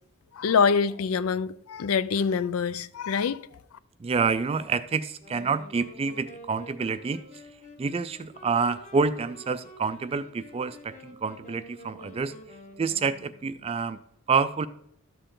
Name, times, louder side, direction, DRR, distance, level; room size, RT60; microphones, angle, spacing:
voice 1, 0.3-3.5, left 6 dB, 80° left, 0.4 m, -25 dB
voice 2, 4.0-7.2 7.8-12.3 12.8-14.0 14.3-14.7, right 5 dB, 25° right, 0.3 m, -28 dB
sound 1, 5.2-13.6, left 1 dB, 35° left, 1.5 m, -49 dB
12.0 x 6.7 x 3.8 m
head